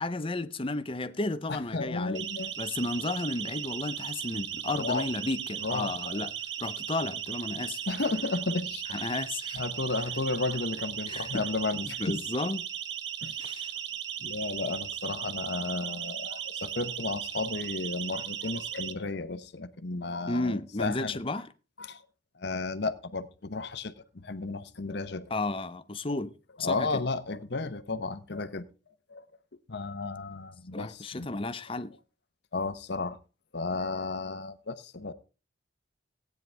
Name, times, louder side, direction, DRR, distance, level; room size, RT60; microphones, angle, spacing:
voice 1, 0.0-2.2 2.6-6.3 6.6-7.9 8.9-9.6 11.1-11.4 12.0-12.6 13.4-13.7 20.3-21.5 25.3-26.3 26.6-27.0 30.7-31.9, left 2 dB, 30° left, 0.7 m, -33 dB
voice 2, 1.5-2.5 4.7-5.0 5.6-6.2 7.9-9.1 9.5-12.2 13.2-13.4 14.2-21.2 21.8-22.0 22.3-25.3 26.1-26.2 26.6-29.2 29.7-31.3 32.5-33.2 33.5-35.1, left 3 dB, 60° left, 0.9 m, -33 dB
Siren, 2.1-18.9, right 9 dB, 65° right, 1.0 m, -37 dB
16.5 x 9.4 x 3.4 m
head